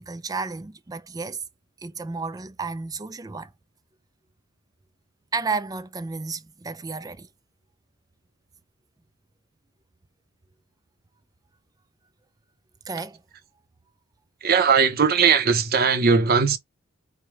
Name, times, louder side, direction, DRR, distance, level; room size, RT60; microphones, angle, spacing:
voice 1, 0.0-1.4 1.8-3.5 5.3-7.3 12.9-13.2, right 4 dB, 15° right, 0.4 m, -32 dB
voice 2, 14.4-16.6, right 6 dB, 45° right, 0.7 m, -19 dB
4.8 x 2.2 x 3.0 m
head